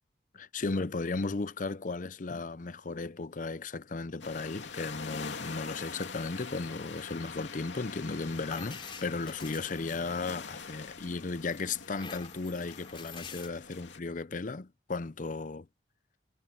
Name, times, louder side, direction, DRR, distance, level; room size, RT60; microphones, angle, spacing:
voice 1, 0.3-15.7, left 3 dB, 45° left, 0.6 m, -35 dB
sound 1, 4.2-14.0, left 5 dB, 80° left, 2.7 m, -44 dB
sound 2, 8.2-10.7 11.2-13.5, left 6 dB, 30° left, 3.1 m, -48 dB
head